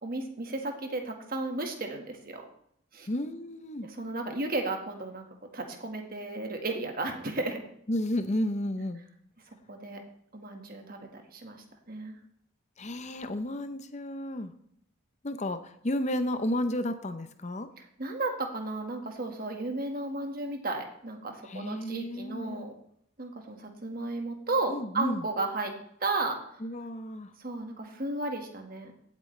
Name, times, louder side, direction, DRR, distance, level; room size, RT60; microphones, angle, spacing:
voice 1, 0.0-2.5 2.9-3.1 3.8-5.2 5.5-7.6 9.7-10.0 10.3-12.2 17.8-22.7 23.2-26.6 27.4-28.9, right 2 dB, 45° right, 3 dB, 1.6 m, -34 dB
voice 2, 3.1-3.9 7.9-9.0 12.8-14.5 15.2-17.7 21.4-22.6 24.7-25.2 26.6-27.3, left 1 dB, 35° left, 10 dB, 0.7 m, -32 dB
16.5 x 8.3 x 3.3 m, 0.70 s
head